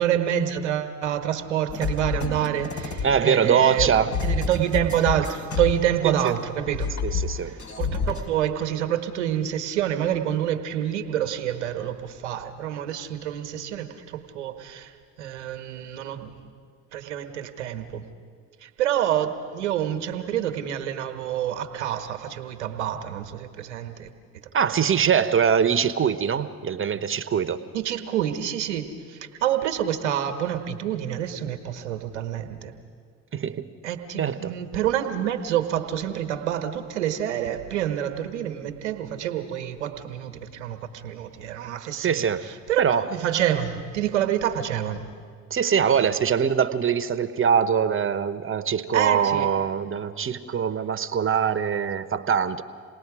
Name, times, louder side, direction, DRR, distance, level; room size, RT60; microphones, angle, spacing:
voice 1, 0.0-6.9 7.3-14.9 15.2-16.3 16.9-18.0 18.6-24.1 24.6-24.8 27.7-32.7 33.8-45.1 48.9-49.5, right 10 dB, 80° right, 8 dB, 1.4 m, -27 dB
sound 1, 1.7-6.3 6.6-8.3, left 5 dB, 55° left, 2.8 m, -29 dB
voice 2, 3.0-4.1 6.0-6.3 7.0-7.5 24.5-27.6 33.3-33.7 34.2-34.5 41.9-42.4 42.8-43.1 45.5-52.6, right 7 dB, 35° right, 13 dB, 1.2 m, -23 dB
28.0 x 19.0 x 5.0 m, 2.1 s
hypercardioid pair, 55°, 34 cm